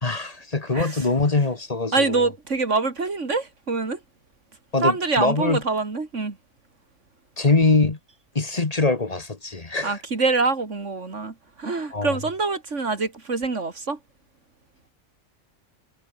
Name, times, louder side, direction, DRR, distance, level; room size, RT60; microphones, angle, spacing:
voice 1, 0.0-2.3 4.7-5.6 7.4-8.0 8.3-10.0 11.9-12.2, left 3 dB, 30° left, 1.5 m, -23 dB
voice 2, 0.7-1.0 1.9-4.0 4.8-6.4 9.8-14.0, right 3 dB, 85° right, 3.1 m, -25 dB
omnidirectional pair, 1.2 m